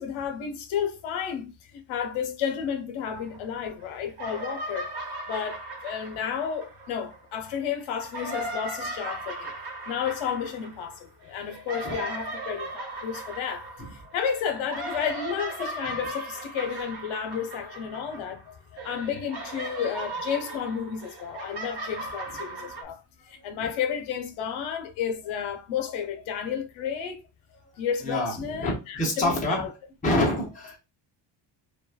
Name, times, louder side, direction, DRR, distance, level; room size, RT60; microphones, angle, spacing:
voice 1, 0.0-4.9 5.3-9.5 9.9-13.7 13.9-18.4 18.8-23.0 23.3-27.2 27.8-29.7, left 7 dB, 75° left, 0.6 m, -32 dB
sound 1, 3.2-3.8 4.1-7.4 7.9-18.5 18.8-22.8, right 2 dB, 55° right, 1.0 m, -37 dB
voice 2, 28.0-29.7 30.0-30.8, left 1 dB, 15° left, 0.7 m, -27 dB
2.9 x 2.2 x 2.2 m
cardioid pair, 180°, 49 cm